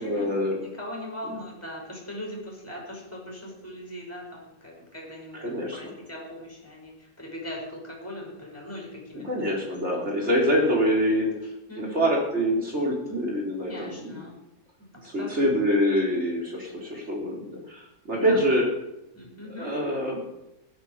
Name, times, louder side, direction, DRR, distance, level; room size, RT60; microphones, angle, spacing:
voice 1, 0.0-0.6 5.3-5.8 9.2-11.3 11.8-14.2 15.0-17.8 18.1-18.6 19.6-20.2, equal, 40° right, -2 dB, 3.9 m, -25 dB
voice 2, 0.5-10.8 11.7-12.1 13.7-14.4 14.9-15.4 18.2-18.4 19.1-19.7, left 1 dB, 10° left, -1 dB, 5.6 m, -40 dB
16.5 x 12.0 x 4.8 m, 0.89 s
omnidirectional pair, 1.9 m